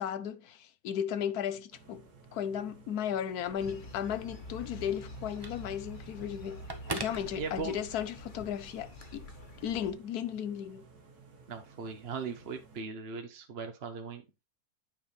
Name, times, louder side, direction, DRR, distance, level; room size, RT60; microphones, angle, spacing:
voice 1, 0.0-6.6 6.9-9.3 9.6-10.8, left 9 dB, 80° left, 1.2 m, -35 dB
sound 1, 1.7-12.8, right 4 dB, 90° right, 2.2 m, -56 dB
Telephone, 3.3-8.1, right 2 dB, 20° right, 0.8 m, -44 dB
sound 2, 3.6-9.9, left 1 dB, 35° left, 1.4 m, -47 dB
voice 2, 7.4-7.7 11.5-14.4, right 5 dB, 45° right, 1.0 m, -39 dB
9.0 x 5.2 x 3.2 m
omnidirectional pair, 1.6 m